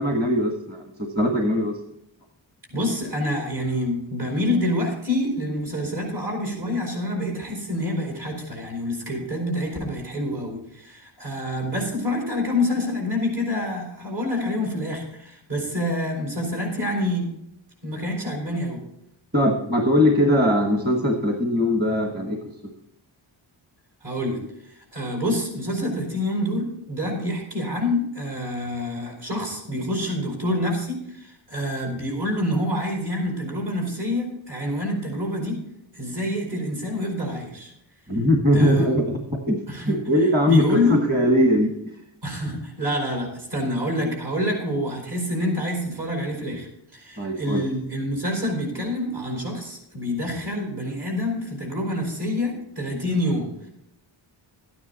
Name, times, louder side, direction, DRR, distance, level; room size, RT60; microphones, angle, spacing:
voice 1, 0.0-1.8 19.3-22.4 38.1-39.6 39.9-41.9 47.2-47.6, left 1 dB, 20° right, 2 dB, 1.2 m, -21 dB
voice 2, 2.7-17.3 17.8-18.9 24.0-35.6 35.9-37.7 38.5-38.9 39.7-40.0 40.5-41.0 42.2-53.7, left 1 dB, 55° right, 0 dB, 4.7 m, -27 dB
13.0 x 9.5 x 4.0 m, 0.76 s
wide cardioid pair, 160°, 47 cm